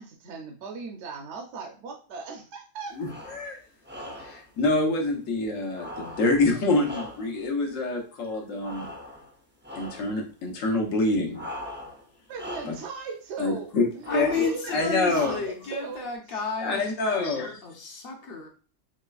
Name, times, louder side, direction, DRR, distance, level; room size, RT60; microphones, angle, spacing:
voice 1, 0.0-3.0 12.3-16.4, right 4 dB, 65° right, 2 dB, 1.0 m, -38 dB
voice 2, 3.0-3.6 4.2-8.9 9.8-11.4 12.7-12.8 13.4-14.5 14.7-15.4 16.6-17.6, left 2 dB, 75° left, 2 dB, 1.3 m, -26 dB
sound 1, 3.0-3.5 3.8-4.5 5.7-7.5 8.6-9.3 9.6-10.2 11.3-12.1 12.3-12.9 14.0-14.6 15.1-15.7, left 1 dB, 15° right, 0.4 m, -40 dB
voice 3, 14.1-18.5, left 5 dB, 50° left, 3 dB, 0.9 m, -32 dB
5.0 x 3.1 x 2.3 m, 0.39 s
omnidirectional pair, 1.4 m